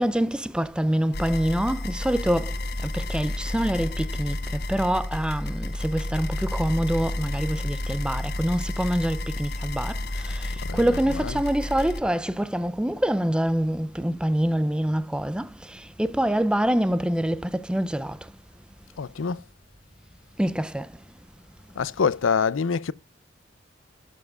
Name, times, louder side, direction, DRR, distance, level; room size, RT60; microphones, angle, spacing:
voice 1, 0.0-2.5 2.8-10.0 10.2-15.5 16.0-18.2 20.4-20.9, right 1 dB, 5° right, 0.4 m, -25 dB
sound 1, 1.1-12.0, left 1 dB, 55° left, 1.1 m, -31 dB
voice 2, 10.6-11.4 19.0-19.4 21.8-22.9, left 6 dB, 85° left, 0.5 m, -26 dB
12.0 x 7.1 x 2.3 m
head